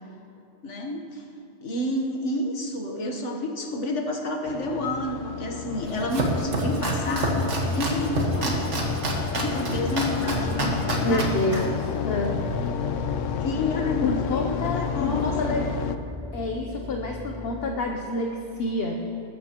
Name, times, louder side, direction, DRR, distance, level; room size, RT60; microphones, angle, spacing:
voice 1, 0.6-1.2 1.6-9.0 9.4-11.3 11.5-11.6 13.4-15.5, left 2 dB, 70° left, 2 dB, 1.6 m, -30 dB
sound 1, 4.5-16.0, left 7 dB, 90° left, 1.0 m, -31 dB
Domestic sounds home sounds, 5.7-12.7, right 1 dB, 75° right, 1.8 m, -28 dB
voice 2, 11.0-12.3 14.0-15.7 16.3-18.9, left 2 dB, 55° left, 1 dB, 1.0 m, -28 dB
sound 2, 12.2-17.8, left 1 dB, 10° right, 2.7 m, -38 dB
20.5 x 13.0 x 3.0 m, 2.8 s
omnidirectional pair, 1.2 m